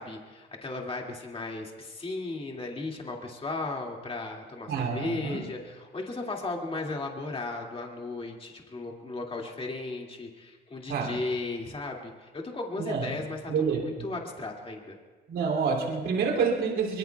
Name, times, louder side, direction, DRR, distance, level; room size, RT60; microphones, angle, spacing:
voice 1, 0.0-15.0, left 3 dB, 30° left, 0 dB, 2.4 m, -36 dB
voice 2, 4.7-5.4 10.9-11.2 12.8-13.1 13.5-14.1 15.3-17.0, right 5 dB, 80° right, -1 dB, 2.9 m, -28 dB
24.0 x 23.0 x 2.4 m, 1.4 s
cardioid pair, 90°, 20 cm